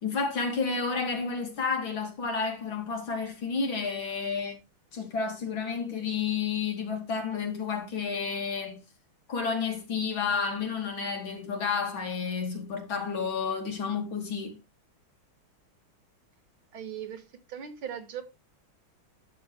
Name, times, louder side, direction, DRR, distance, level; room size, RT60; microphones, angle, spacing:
voice 1, 0.0-4.6 4.9-8.8 9.3-14.6, left 5 dB, 65° left, 3.4 m, -31 dB
voice 2, 16.7-17.2 17.5-18.2, right 9 dB, 75° right, 2.3 m, -38 dB
11.0 x 7.9 x 3.2 m
omnidirectional pair, 2.3 m